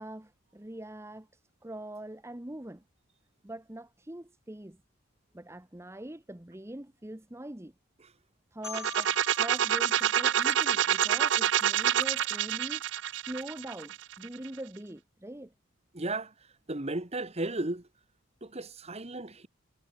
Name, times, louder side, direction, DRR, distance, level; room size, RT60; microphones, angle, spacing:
voice 1, 0.0-2.8 3.4-4.8 5.3-7.7 8.5-12.8 13.1-15.5, right 1 dB, 10° right, 1.0 m, -43 dB
Marimba xylophone, 8.6-11.5, left 6 dB, 75° left, 5.7 m, -47 dB
sound 1, 8.6-14.5, right 10 dB, 60° right, 0.6 m, -27 dB
voice 2, 15.9-16.3 16.7-17.8 18.4-19.5, right 2 dB, 30° right, 1.7 m, -34 dB
head